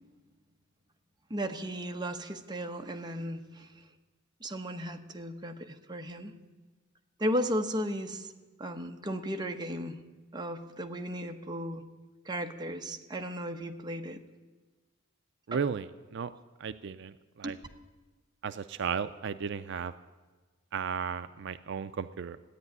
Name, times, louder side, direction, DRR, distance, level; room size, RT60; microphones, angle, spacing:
voice 1, 1.3-3.7 4.4-6.3 7.2-8.3 8.6-10.0 10.3-11.8 12.2-14.2 15.5-15.6 17.4-17.5, equal, 20° right, 4 dB, 1.0 m, -35 dB
voice 2, 15.5-16.3 16.6-17.6 18.4-19.9 20.7-22.4, right 6 dB, 60° right, 11 dB, 0.4 m, -35 dB
14.5 x 9.9 x 9.5 m, 1.3 s
head